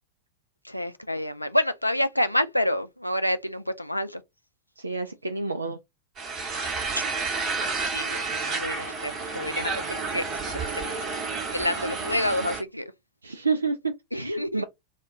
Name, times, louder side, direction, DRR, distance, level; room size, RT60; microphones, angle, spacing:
voice 1, 0.6-4.2 6.9-7.0 7.7-8.2 8.5-11.2 11.5-12.9 14.1-14.6, left 1 dB, 90° left, 0.3 m, -28 dB
voice 2, 4.8-5.8 13.2-14.6, right 4 dB, 80° right, 0.3 m, -29 dB
sound 1, 6.2-12.6, right 4 dB, 30° right, 0.9 m, -30 dB
2.2 x 2.1 x 3.6 m
figure-of-eight pair, 90°, 0 cm